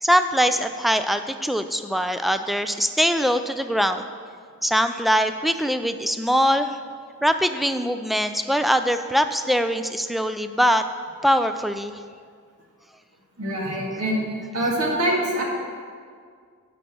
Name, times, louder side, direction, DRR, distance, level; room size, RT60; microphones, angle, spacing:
voice 1, 0.0-4.1 4.6-6.8 7.2-10.8 11.2-11.9, equal, ahead, 9 dB, 0.3 m, -22 dB
voice 2, 13.4-14.2 14.5-15.4, right 1 dB, 70° right, -3 dB, 2.1 m, -24 dB
9.9 x 6.2 x 6.1 m, 2.1 s
head